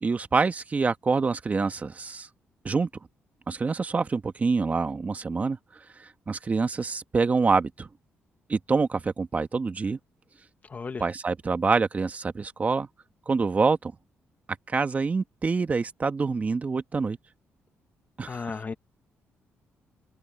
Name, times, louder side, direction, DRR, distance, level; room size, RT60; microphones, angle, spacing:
voice 1, 0.0-2.3 2.6-2.9 3.5-5.6 6.0-7.9 8.5-10.0 11.0-12.9 13.3-13.9 14.7-17.2 18.2-18.4, right 4 dB, 35° right, 1.6 m, -26 dB
voice 2, 10.7-11.0 18.2-18.7, left 4 dB, 35° left, 1.0 m, -34 dB
open air
cardioid pair, 95°, 5 cm